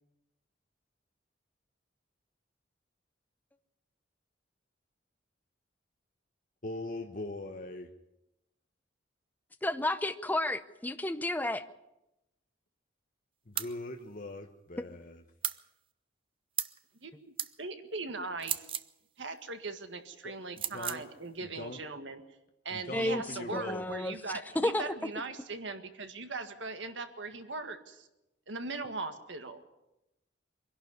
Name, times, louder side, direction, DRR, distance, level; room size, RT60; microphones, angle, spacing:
voice 1, 6.6-7.9 13.5-15.2 20.2-21.0 21.4-21.8 22.7-23.9, left 2 dB, 45° left, 4 dB, 1.2 m, -41 dB
voice 2, 9.6-11.6 22.9-23.2 23.5-24.2 24.5-25.1, left 1 dB, 10° left, 10 dB, 0.7 m, -31 dB
sound 1, 13.6-13.7 15.4-15.6 16.6-16.8 17.4-17.5 18.4-18.9 20.6-21.0, right 10 dB, 30° right, 0.6 m, -34 dB
voice 3, 17.0-18.7 19.2-22.2 22.7-28.1 28.5-29.6, right 3 dB, 75° right, 8 dB, 1.8 m, -40 dB
23.5 x 11.5 x 9.6 m, 0.91 s
head